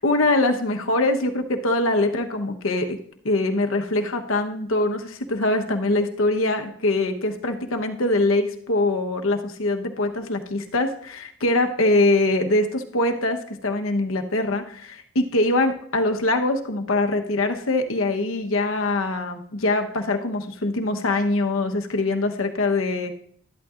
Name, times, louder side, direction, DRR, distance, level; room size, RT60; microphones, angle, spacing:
voice 1, 0.0-3.0 3.2-23.1, left 2 dB, 80° left, 4 dB, 1.1 m, -23 dB
12.5 x 11.5 x 2.5 m, 0.64 s
head